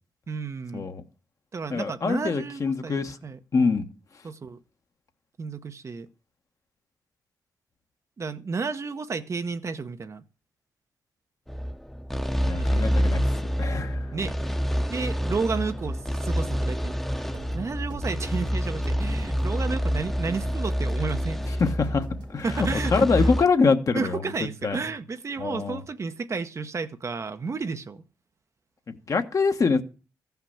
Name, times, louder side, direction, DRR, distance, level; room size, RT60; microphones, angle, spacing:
voice 1, 0.3-0.9 1.5-3.4 4.2-4.6 5.4-6.1 8.2-10.2 12.5-12.9 14.1-14.3 14.9-17.0 17.5-21.4 22.4-23.3 23.9-28.0, right 4 dB, 40° right, 0.8 m, -32 dB
voice 2, 1.7-3.2 3.5-3.9 12.4-13.2 13.6-14.1 21.5-24.2 24.6-24.8 25.4-25.8 28.9-29.8, left 4 dB, 45° left, 1.2 m, -24 dB
sound 1, 11.5-23.4, equal, 5° left, 0.9 m, -27 dB
sound 2, 17.3-23.3, right 4 dB, 80° right, 1.5 m, -47 dB
14.5 x 5.8 x 7.1 m
cardioid pair, 85°, 7 cm